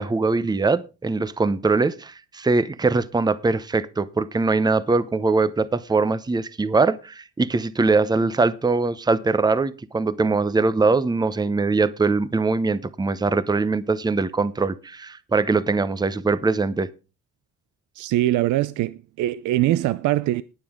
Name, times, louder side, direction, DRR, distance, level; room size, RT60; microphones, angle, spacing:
voice 1, 0.0-16.9, right 3 dB, 15° right, 0.7 m, -22 dB
voice 2, 18.0-20.4, right 15 dB, 80° right, 0.5 m, -22 dB
20.0 x 7.0 x 3.7 m
cardioid pair, 90°, 30 cm